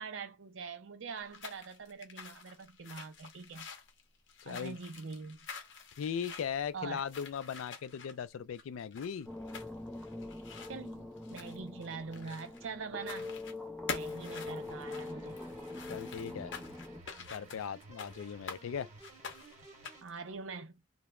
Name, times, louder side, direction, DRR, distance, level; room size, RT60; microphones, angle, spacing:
voice 1, 0.0-3.7 4.5-5.4 6.7-7.0 10.7-13.4 13.9-15.4 20.0-20.7, right 5 dB, 70° right, 0.5 m, -43 dB
sound 1, 1.1-12.7 13.0-13.6 13.9-18.6 19.0-20.2, left 5 dB, 60° left, 0.7 m, -47 dB
voice 2, 4.4-4.8 6.0-9.3 15.9-16.5 17.3-18.9, left 7 dB, 85° left, 0.3 m, -38 dB
sound 2, 9.3-17.0, left 2 dB, 5° left, 0.4 m, -43 dB
sound 3, 14.0-20.0, right 2 dB, 35° right, 1.0 m, -55 dB
3.1 x 2.0 x 2.2 m
head